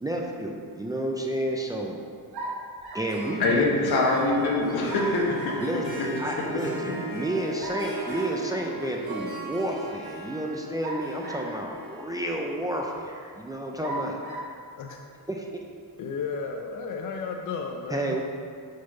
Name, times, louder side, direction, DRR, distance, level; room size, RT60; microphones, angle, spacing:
voice 1, 0.0-2.0 2.9-3.9 5.6-14.2 15.3-15.4 17.9-18.2, right 1 dB, 10° right, 0 dB, 0.3 m, -31 dB
sound 1, 2.3-3.2 4.9-5.7 7.6-8.4 10.8-11.7 12.4-12.5 13.8-14.5, right 2 dB, 85° right, 1.1 m, -36 dB
Harp, 3.1-14.5, right 1 dB, 35° right, 1.5 m, -39 dB
voice 2, 3.4-5.6 6.0-6.1 6.5-6.6, left 2 dB, 85° left, -1 dB, 1.2 m, -24 dB
voice 3, 16.0-18.2, left 5 dB, 55° left, 3 dB, 0.5 m, -33 dB
4.7 x 4.5 x 5.8 m, 2.3 s
wide cardioid pair, 160°, 37 cm